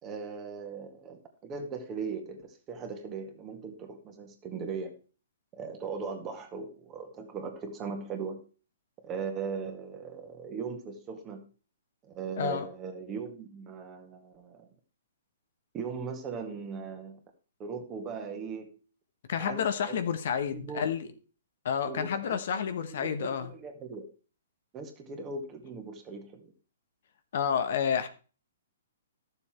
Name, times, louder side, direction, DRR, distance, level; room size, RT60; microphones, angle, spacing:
voice 1, 0.0-5.0 5.5-8.4 9.0-11.4 12.0-14.7 15.7-17.2 17.6-18.7 19.4-20.0 20.5-20.9 21.8-22.6 23.0-24.1 24.7-26.5, right 5 dB, 25° right, 2.0 m, -39 dB
voice 2, 19.3-21.1 21.6-23.5 27.3-28.1, left 7 dB, 60° left, 1.2 m, -30 dB
12.0 x 7.0 x 4.5 m
hypercardioid pair, 130°, 0 cm